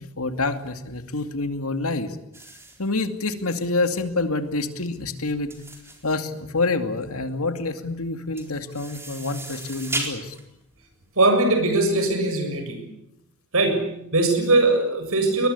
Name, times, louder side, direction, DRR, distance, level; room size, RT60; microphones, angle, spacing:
voice 1, 0.0-2.2 2.8-5.5 6.0-10.4, left 3 dB, 80° left, 8 dB, 2.5 m, -27 dB
sound 1, 2.3-12.0, right 2 dB, 10° right, 4.1 m, -37 dB
voice 2, 11.2-12.8 13.5-15.5, right 2 dB, 70° right, 6 dB, 7.3 m, -20 dB
22.0 x 21.0 x 9.8 m, 0.79 s
head